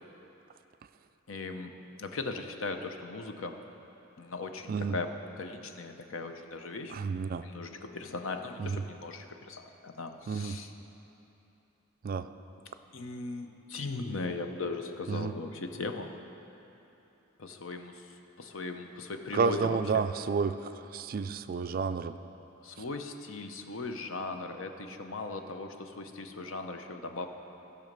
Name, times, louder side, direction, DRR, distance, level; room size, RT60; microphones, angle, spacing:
voice 1, 1.3-1.7 2.0-3.6 4.2-5.1 5.4-7.0 7.4-10.7 12.9-16.1 17.4-18.1 18.4-20.0 22.6-27.3, left 3 dB, 70° left, 6 dB, 0.7 m, -38 dB
voice 2, 6.9-7.5 8.6-8.8 10.3-10.6 12.0-12.3 15.1-15.3 19.3-22.2, right 5 dB, 45° right, 11 dB, 0.3 m, -31 dB
15.5 x 6.3 x 5.3 m, 3.0 s
head